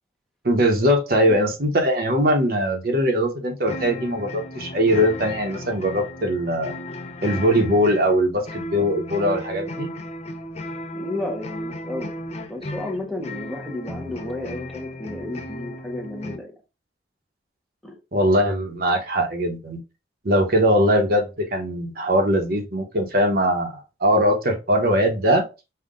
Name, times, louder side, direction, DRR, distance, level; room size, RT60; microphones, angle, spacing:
voice 1, 0.4-6.8 7.2-9.9 18.1-19.8 20.2-25.4, equal, 55° right, 1.0 m, -21 dB
sound 1, 3.6-16.4, left 1 dB, 35° left, 0.6 m, -35 dB
voice 2, 10.9-12.1 12.5-16.5 17.8-18.0, left 2 dB, ahead, 0.8 m, -32 dB
5.6 x 2.4 x 3.7 m
head